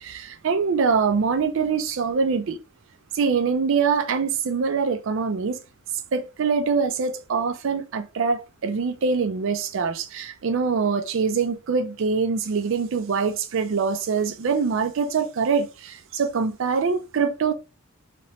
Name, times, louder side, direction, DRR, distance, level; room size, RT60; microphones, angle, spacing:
voice 1, 0.0-2.6 3.1-5.6 6.1-17.5, right 5 dB, 65° right, 0.4 m, -24 dB
3.0 x 2.9 x 2.9 m
head